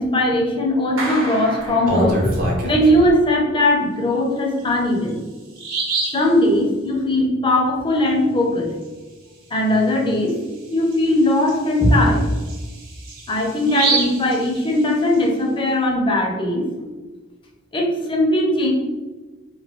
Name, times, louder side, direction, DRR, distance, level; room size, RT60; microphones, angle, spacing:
voice 1, 0.0-5.2 6.1-8.7 9.5-10.4 10.7-12.4 13.3-16.7 17.7-18.7, left 1 dB, 25° left, 0 dB, 0.5 m, -19 dB
Clapping, 1.0-2.7, right 1 dB, 85° right, 0.7 m, -31 dB
Bird vocalization bird call bird song, 1.6-3.1 4.6-4.7 5.1-5.2 5.6-6.3 9.7-9.9 10.3-10.4 10.9-15.1, right 2 dB, 45° right, 0.6 m, -26 dB
3.0 x 2.3 x 3.1 m, 1.3 s
head